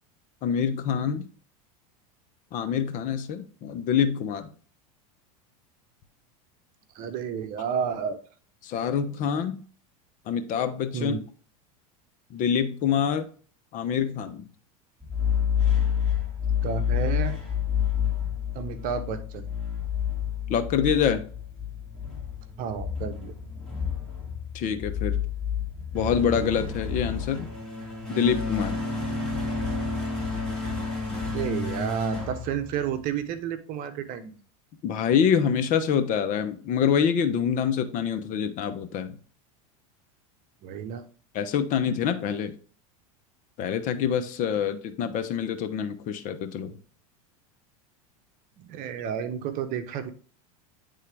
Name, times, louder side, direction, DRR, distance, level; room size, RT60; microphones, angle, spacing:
voice 1, 0.4-1.3 2.5-4.5 8.6-9.6 10.3-11.2 12.3-13.3 13.7-14.5 20.5-21.2 24.5-25.1 25.9-27.5 28.1-28.8 34.8-39.2 41.3-42.5 43.6-46.7, left 7 dB, 45° left, 9 dB, 0.9 m, -26 dB
voice 2, 6.9-8.2 10.9-11.2 16.6-17.4 18.5-19.5 22.6-23.4 31.2-34.3 40.6-41.1 48.6-50.1, right 8 dB, 50° right, 9 dB, 1.0 m, -31 dB
sound 1, 15.0-33.2, left 7 dB, 5° left, 3.2 m, -29 dB
9.7 x 3.7 x 3.4 m, 0.42 s
supercardioid pair, 115°, 19 cm